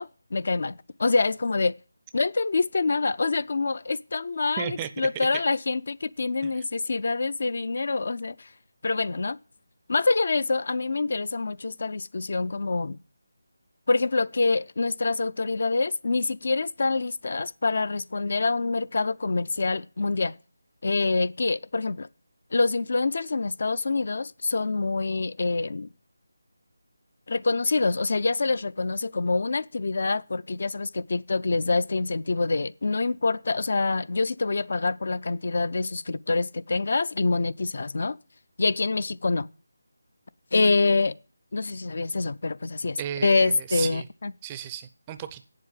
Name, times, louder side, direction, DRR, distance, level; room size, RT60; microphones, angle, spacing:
voice 1, 0.0-1.7 2.1-8.5 8.8-9.4 9.9-13.0 13.9-20.3 20.8-22.1 22.5-25.9 27.3-38.2 38.6-39.5 40.5-41.2 41.5-44.3, left 3 dB, 50° left, 0.4 m, -26 dB
voice 2, 4.6-4.9 5.2-5.3 43.0-44.0 44.4-45.4, right 10 dB, 15° right, 0.5 m, -34 dB
8.3 x 7.5 x 7.4 m
figure-of-eight pair, 175°, 0 cm